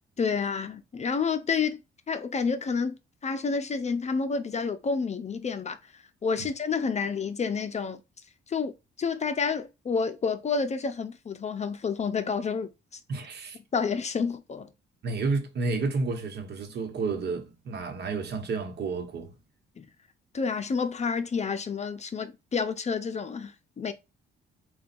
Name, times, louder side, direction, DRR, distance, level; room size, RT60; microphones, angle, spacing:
voice 1, 0.2-1.8 2.1-3.0 3.2-5.8 6.2-8.0 8.5-8.7 9.0-12.7 13.7-14.7 19.8-19.9 20.3-23.9, left 5 dB, 35° left, 0.6 m, -29 dB
voice 2, 13.1-13.6 15.0-19.3, right 4 dB, 55° right, 1.1 m, -31 dB
3.9 x 2.3 x 4.2 m
cardioid pair, 90°, 20 cm